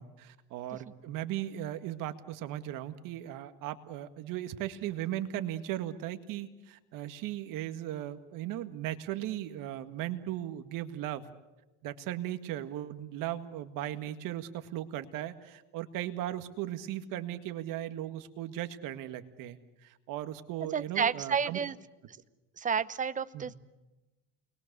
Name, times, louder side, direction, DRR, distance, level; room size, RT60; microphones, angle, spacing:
voice 1, 0.0-11.3 11.8-21.6 23.3-23.5, right 12 dB, 65° right, 9 dB, 1.9 m, -37 dB
voice 2, 20.7-21.7 22.6-23.5, right 6 dB, 20° right, 14 dB, 0.9 m, -30 dB
29.0 x 21.5 x 6.9 m, 1.1 s
cardioid pair, 115°, 35 cm